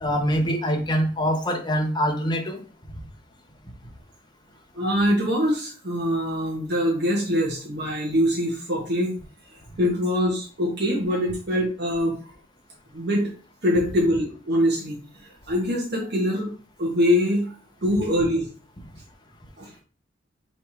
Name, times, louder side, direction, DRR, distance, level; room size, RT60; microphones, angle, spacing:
voice 1, 0.0-2.6, equal, 25° left, 2 dB, 0.9 m, -24 dB
voice 2, 4.7-9.1 9.8-12.1 12.9-13.3 13.6-15.0 15.5-16.5 16.8-17.5 17.8-18.5 19.6-19.7, equal, 65° right, -4 dB, 1.2 m, -23 dB
3.3 x 2.8 x 4.7 m, 0.40 s
head